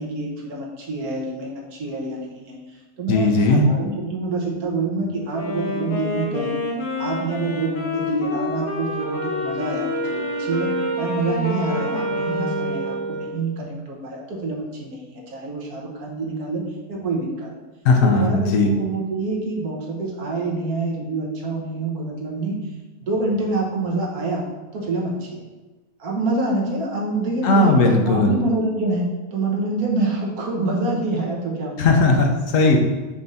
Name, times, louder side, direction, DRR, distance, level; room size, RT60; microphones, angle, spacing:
voice 1, 0.0-6.5 7.0-10.7 11.0-16.6 16.9-17.6 18.0-22.6 23.0-24.4 24.7-25.4 26.0-32.0, right 2 dB, 85° right, -1 dB, 1.6 m, -26 dB
voice 2, 3.1-3.6 17.8-18.7 27.4-28.4 31.8-32.8, left 2 dB, 65° left, 2 dB, 1.1 m, -17 dB
Wind instrument woodwind instrument, 5.3-13.3, left 3 dB, 80° left, 1.5 m, -29 dB
Wind instrument woodwind instrument 2, 9.0-13.6, right 3 dB, 65° right, 0.3 m, -29 dB
5.2 x 3.4 x 5.3 m, 1.2 s
omnidirectional pair, 1.5 m